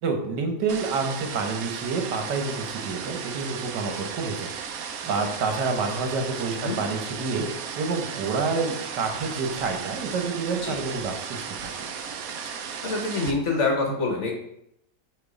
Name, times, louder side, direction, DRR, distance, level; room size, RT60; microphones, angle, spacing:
voice 1, 0.0-11.7, right 4 dB, 85° right, 4 dB, 1.6 m, -28 dB
sound 1, 0.7-13.3, right 7 dB, 65° right, 1.0 m, -35 dB
voice 2, 12.8-14.3, left 3 dB, 50° left, 2 dB, 1.1 m, -26 dB
6.1 x 3.1 x 5.0 m, 0.77 s
omnidirectional pair, 1.8 m